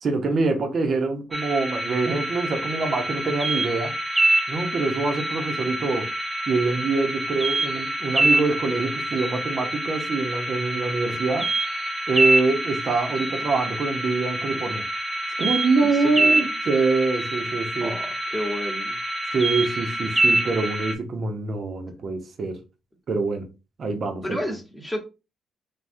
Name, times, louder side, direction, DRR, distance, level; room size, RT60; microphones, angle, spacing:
voice 1, 0.0-3.9 4.5-6.1 6.5-11.5 12.1-14.9 15.4-17.9 19.3-22.6 23.1-23.5 23.8-24.4, right 3 dB, 50° right, 0.7 m, -25 dB
sound 1, 1.3-20.9, right 1 dB, 15° right, 0.5 m, -26 dB
voice 2, 15.8-16.4 17.8-19.0 24.2-25.0, equal, 5° left, 1.0 m, -31 dB
3.4 x 2.2 x 2.6 m
cardioid pair, 90°, 0 cm